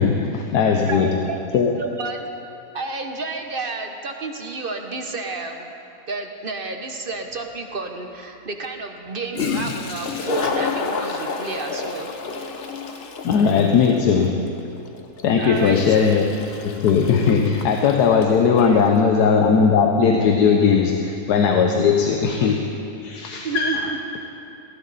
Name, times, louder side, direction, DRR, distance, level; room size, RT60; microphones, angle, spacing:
voice 1, 0.0-1.3 1.5-1.8 13.2-14.5 15.2-16.3 16.6-22.7 23.0-23.8, left 6 dB, 80° left, 3 dB, 1.4 m, -18 dB
voice 2, 0.7-1.4 1.8-2.2 2.7-5.7 6.1-12.1 15.4-15.8 18.6-18.9 23.4-24.0, right 3 dB, 40° right, 4 dB, 1.0 m, -31 dB
Toilet flush, 7.3-7.4 9.1-9.2 9.3-18.7, left 4 dB, 45° left, 1.0 m, -30 dB
18.5 x 15.5 x 4.1 m, 2.8 s
omnidirectional pair, 1.7 m